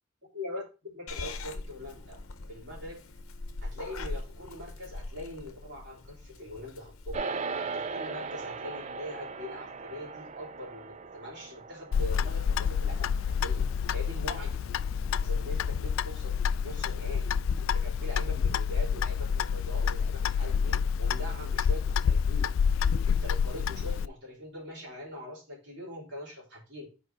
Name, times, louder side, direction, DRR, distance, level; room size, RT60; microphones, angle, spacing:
voice 1, 0.2-2.2 2.5-3.0 3.6-7.2 7.6-13.6 13.9-14.6 15.2-17.3 17.6-22.5 23.0-26.9, left 1 dB, 55° right, -3 dB, 3.4 m, -42 dB
Purr / Meow, 1.1-7.2, left 2 dB, 90° left, 0.9 m, -41 dB
sound 1, 7.1-16.6, right 4 dB, 30° right, 0.4 m, -40 dB
Clock, 11.9-24.1, left 6 dB, 70° left, 0.3 m, -28 dB
5.3 x 4.7 x 5.8 m, 0.32 s
head